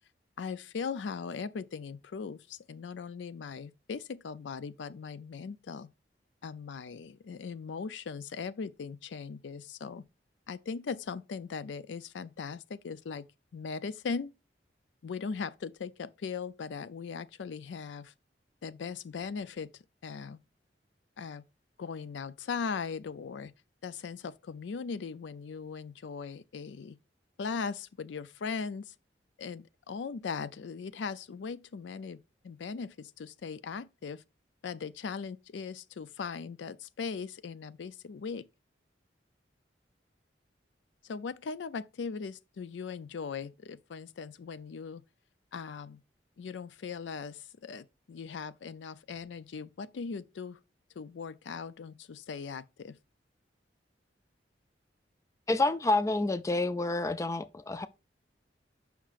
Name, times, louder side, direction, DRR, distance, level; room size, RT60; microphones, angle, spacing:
voice 1, 0.4-5.9 6.4-10.1 10.5-13.3 13.5-14.3 15.0-18.1 18.6-19.7 20.0-20.4 21.2-21.4 21.8-23.5 23.8-27.0 27.4-28.9 29.4-34.2 34.6-38.5 41.0-45.0 45.5-46.0 46.4-50.6 51.0-53.0, left 5 dB, 85° left, 0.4 m, -39 dB
voice 2, 55.5-57.9, left 2 dB, 15° left, 0.3 m, -28 dB
7.3 x 5.8 x 2.5 m
head